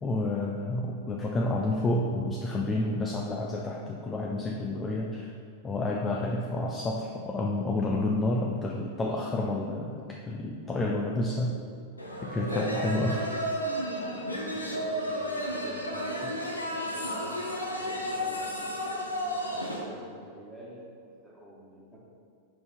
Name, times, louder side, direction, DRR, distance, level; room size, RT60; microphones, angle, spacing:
voice 1, 0.0-5.3 5.6-11.6 12.2-13.3 16.2-16.3, left 2 dB, 20° left, -1 dB, 0.5 m, -30 dB
sound 1, 12.0-19.8, equal, 85° left, 0.9 m, -32 dB
voice 2, 14.6-16.5 16.7-17.4 17.8-22.0, right 1 dB, ahead, -5 dB, 1.6 m, -47 dB
5.4 x 5.4 x 4.3 m, 2.3 s
figure-of-eight pair, 90°, 0 cm